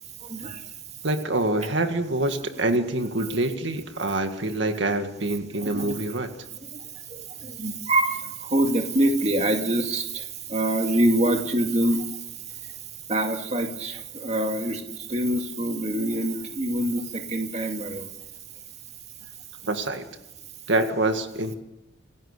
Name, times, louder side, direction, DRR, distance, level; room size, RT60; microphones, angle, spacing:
voice 1, 1.0-6.3 19.6-20.0 20.7-21.5, right 2 dB, 70° right, 6 dB, 1.9 m, -26 dB
voice 2, 7.6-8.2 8.5-10.2 10.5-12.0 13.1-14.8 15.1-18.1, right 1 dB, 35° right, 5 dB, 2.2 m, -24 dB
27.5 x 17.0 x 6.7 m, 0.93 s
head